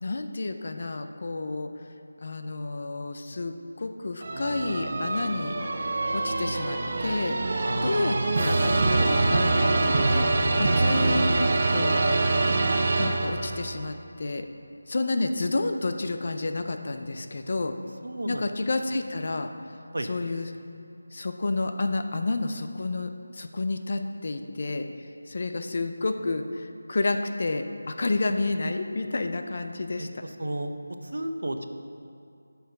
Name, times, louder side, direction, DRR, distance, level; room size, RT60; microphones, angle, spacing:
voice 1, 0.0-1.7 2.2-5.6 6.1-7.4 7.8-10.3 10.6-12.0 13.0-14.5 14.9-17.7 18.3-19.5 20.0-20.5 21.1-24.9 25.3-30.2, left 2 dB, 40° left, 7 dB, 0.5 m, -30 dB
sound 1, 4.2-13.7, right 2 dB, 30° right, 0.5 m, -24 dB
voice 2, 7.6-8.3 18.0-18.4 19.9-20.1 30.0-30.7 31.0-31.7, right 1 dB, 85° right, 7 dB, 0.8 m, -32 dB
8.4 x 5.8 x 6.5 m, 2.5 s
figure-of-eight pair, 180°, 0 cm